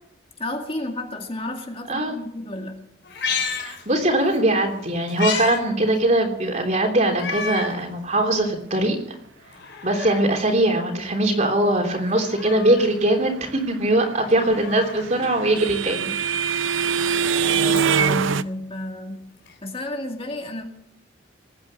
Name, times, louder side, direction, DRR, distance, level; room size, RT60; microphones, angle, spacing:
voice 1, 0.4-2.9 17.5-19.3 19.6-20.6, left 1 dB, 30° left, 3 dB, 2.1 m, -32 dB
Meow, 3.0-4.4 4.7-5.6 6.0-6.1 7.1-7.8 8.3-8.4 9.4-10.4 11.9-12.9 14.3-15.1 16.6-18.2 19.5-19.6, left 5 dB, 65° left, 3.9 m, -32 dB
voice 2, 3.6-9.0 9.8-16.6, right 1 dB, 40° right, 3 dB, 3.3 m, -21 dB
sound 1, 14.6-18.4, right 6 dB, 85° right, 0.6 m, -23 dB
20.0 x 9.6 x 7.5 m, 0.78 s
head